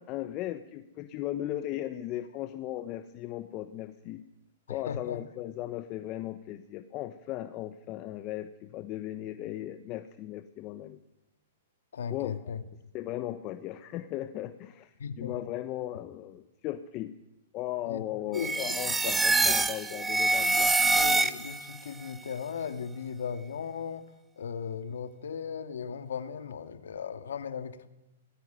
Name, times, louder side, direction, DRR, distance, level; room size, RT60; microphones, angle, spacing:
voice 1, 0.0-4.2 4.7-11.0 12.1-12.4 12.9-17.1 17.5-20.7, left 13 dB, 35° left, 10 dB, 1.1 m, -37 dB
voice 2, 4.7-5.2 11.9-12.6 15.0-15.3 17.9-18.8 19.4-19.6 20.4-24.1 24.4-27.9, left 7 dB, 80° left, 10 dB, 2.0 m, -37 dB
sound 1, 18.3-21.7, right 3 dB, 10° right, 1.1 m, -25 dB
19.0 x 15.5 x 9.3 m, 0.92 s
hypercardioid pair, 135°, 0 cm